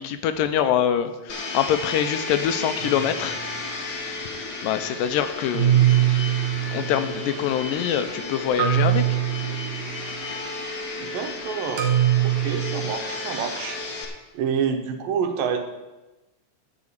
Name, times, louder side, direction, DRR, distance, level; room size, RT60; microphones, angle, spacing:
voice 1, 0.0-3.9 4.6-6.1 6.7-9.0, left 9 dB, 80° left, 9 dB, 2.3 m, -25 dB
Domestic sounds home sounds, 1.3-14.0, left 3 dB, 60° left, 1.0 m, -33 dB
sound 1, 2.8-3.6 5.5-7.3 8.6-10.1 11.8-12.9, right 12 dB, 55° right, 1.9 m, -23 dB
voice 2, 11.0-11.9 12.2-13.8 14.3-15.7, right 7 dB, 85° right, 6 dB, 2.7 m, -28 dB
11.5 x 4.9 x 8.4 m, 1.1 s
omnidirectional pair, 3.9 m